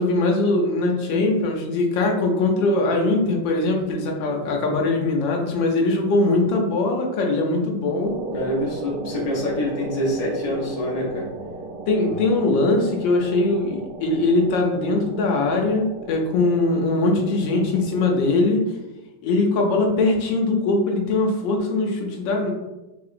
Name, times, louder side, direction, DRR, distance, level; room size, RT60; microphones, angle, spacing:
voice 1, 0.0-8.2 11.9-18.6 19.2-22.5, left 2 dB, 80° left, 1 dB, 1.4 m, -21 dB
sound 1, 8.0-18.4, right 3 dB, 70° right, 1.2 m, -36 dB
voice 2, 8.3-11.3, left 1 dB, 60° left, -3 dB, 0.4 m, -26 dB
4.3 x 2.9 x 2.5 m, 1.0 s
omnidirectional pair, 2.1 m